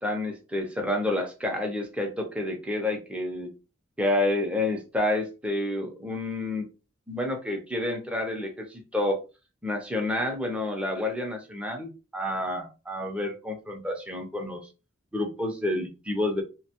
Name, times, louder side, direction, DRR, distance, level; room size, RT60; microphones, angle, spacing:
voice 1, 0.0-3.5 4.0-6.7 7.1-9.2 9.6-14.7 15.1-16.4, left 1 dB, 5° right, 2 dB, 0.5 m, -29 dB
2.8 x 2.2 x 2.8 m, 0.31 s
head